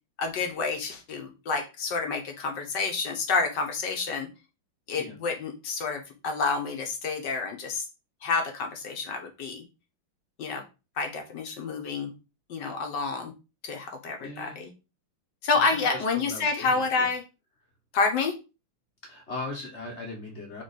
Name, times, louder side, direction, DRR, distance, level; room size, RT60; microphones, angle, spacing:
voice 1, 0.2-4.3 4.9-7.8 8.2-9.6 10.4-10.6 11.0-12.1 12.5-13.3 13.6-14.7 15.4-17.2 17.9-18.3, left 4 dB, 65° left, 4 dB, 1.3 m, -29 dB
voice 2, 14.2-14.6 15.5-17.1 19.0-20.6, left 2 dB, 45° left, 0 dB, 1.0 m, -39 dB
3.7 x 3.5 x 4.0 m, 0.29 s
omnidirectional pair, 2.3 m